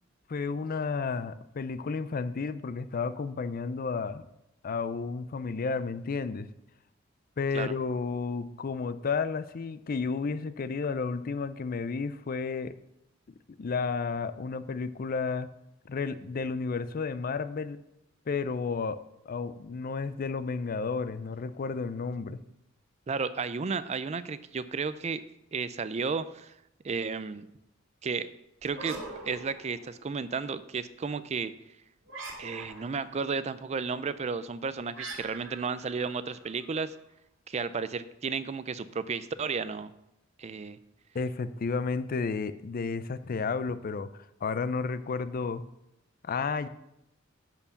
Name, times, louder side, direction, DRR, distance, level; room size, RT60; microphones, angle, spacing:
voice 1, 0.3-4.3 4.6-6.5 7.4-12.7 13.6-15.5 15.9-17.8 18.3-19.0 19.3-22.4 41.1-44.1 44.4-45.6 46.2-46.7, left 4 dB, 45° left, 14 dB, 0.5 m, -32 dB
voice 2, 23.1-25.2 25.5-26.5 26.8-27.5 28.0-28.3 28.6-31.5 32.4-36.9 37.5-39.9 40.4-40.8, right 5 dB, 35° right, 14 dB, 0.4 m, -33 dB
sound 1, 28.6-30.2 32.0-33.1 34.9-36.8, right 3 dB, 80° right, 2.3 m, -43 dB
10.5 x 4.5 x 7.1 m, 0.85 s
head